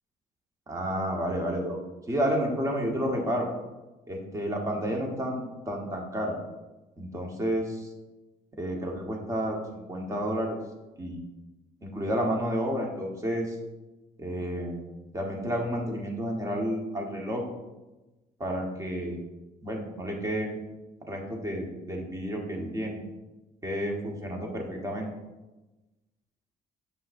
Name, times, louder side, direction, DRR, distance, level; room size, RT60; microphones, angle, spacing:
voice 1, 0.7-1.8 2.1-3.5 4.1-6.4 7.0-7.9 8.6-10.6 11.0-11.2 11.8-13.6 14.2-14.8 15.1-17.4 18.4-19.2 19.6-20.6 21.1-23.0 23.6-25.1, equal, 20° right, 0 dB, 1.2 m, -30 dB
6.5 x 5.6 x 2.6 m, 1.1 s
cardioid pair, 110°, 17 cm